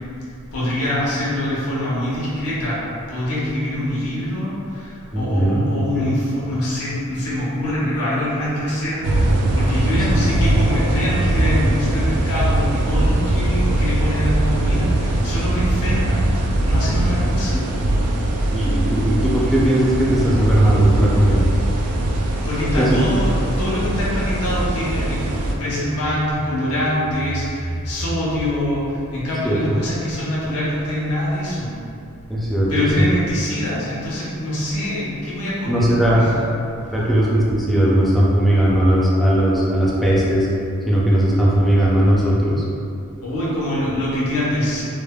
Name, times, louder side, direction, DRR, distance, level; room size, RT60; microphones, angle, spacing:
voice 1, 0.5-2.8 3.1-16.3 16.6-17.6 22.3-31.7 32.7-36.5 43.2-44.8, left 1 dB, 75° left, -8 dB, 0.8 m, -24 dB
voice 2, 5.1-5.6 5.9-6.1 10.1-10.2 17.5-17.6 18.5-21.4 22.8-23.0 29.4-29.8 32.3-32.7 33.0-33.1 35.7-36.3 36.9-40.5 40.9-42.6, right 1 dB, ahead, -7 dB, 0.3 m, -18 dB
sound 1, 9.0-25.6, right 1 dB, 80° right, 0.3 m, -20 dB
3.1 x 2.0 x 2.3 m, 2.5 s
head